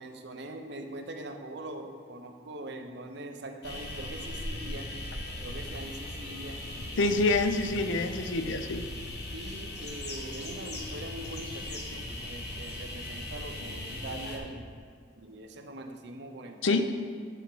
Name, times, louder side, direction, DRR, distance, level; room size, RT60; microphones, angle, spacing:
voice 1, 0.0-4.9 5.4-7.1 9.3-14.7 15.2-16.9, right 1 dB, 60° right, 4 dB, 0.7 m, -42 dB
sound 1, 3.6-14.4, left 1 dB, 55° left, 1.1 m, -39 dB
voice 2, 7.0-8.9 16.6-16.8, left 2 dB, 75° left, 8 dB, 0.5 m, -26 dB
9.1 x 4.3 x 5.5 m, 2.2 s
head